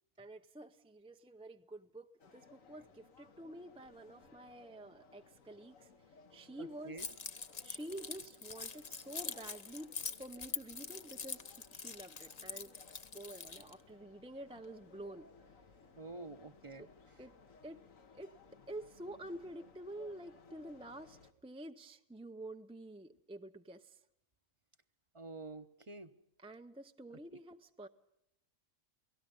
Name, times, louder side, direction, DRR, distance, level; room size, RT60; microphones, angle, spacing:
voice 1, 0.2-5.9 6.3-7.0 7.6-11.4 11.7-12.7 13.1-15.3 16.8-16.9 17.2-17.3 17.6-17.8 18.1-18.4 18.7-24.0 26.4-27.9, right 1 dB, 10° right, 7 dB, 0.4 m, -49 dB
sound 1, 2.2-21.3, left 5 dB, 75° left, 1.8 m, -61 dB
voice 2, 6.6-7.1 16.0-16.9 25.1-26.1 27.3-27.4, right 3 dB, 25° right, 10 dB, 0.8 m, -48 dB
Keys jangling, 7.0-13.7, left 5 dB, 35° left, 0.8 m, -44 dB
29.5 x 18.0 x 5.4 m, 0.82 s
omnidirectional pair, 1.4 m